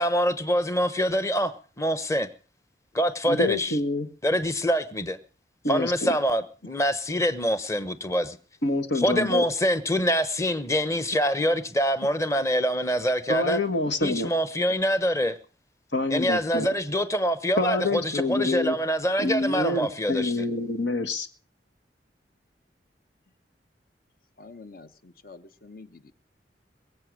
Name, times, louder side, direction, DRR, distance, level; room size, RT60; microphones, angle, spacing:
voice 1, 0.0-2.3 2.9-3.8 4.2-5.2 5.7-8.4 8.9-13.6 14.0-15.4 16.1-20.3, equal, 15° left, 1.0 m, -25 dB
voice 2, 3.3-4.1 5.6-6.2 8.6-9.4 13.3-14.3 15.9-16.7 17.6-18.7 19.2-21.3, left 2 dB, 90° left, 1.7 m, -27 dB
voice 3, 24.4-26.1, left 3 dB, 55° left, 1.0 m, -47 dB
22.0 x 8.0 x 6.3 m
head